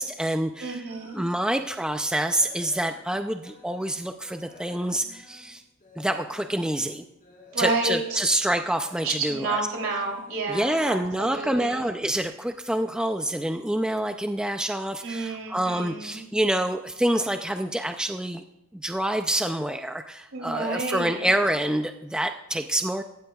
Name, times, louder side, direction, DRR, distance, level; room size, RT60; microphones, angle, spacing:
voice 1, 0.0-0.8 1.1-5.6 6.0-7.0 7.6-9.6 10.5-18.4 18.7-23.0, right 1 dB, 5° right, 7 dB, 0.4 m, -27 dB
voice 2, 0.6-1.2 7.5-8.3 9.0-11.9 15.0-16.2 20.3-21.2, right 3 dB, 65° right, 1 dB, 3.1 m, -30 dB
sound 1, 0.8-1.3 1.7-3.9 4.2-11.4 11.8-12.0 12.5-12.6 13.0-13.1, left 2 dB, 40° left, 4.0 m, -52 dB
16.5 x 12.5 x 2.3 m, 0.94 s
head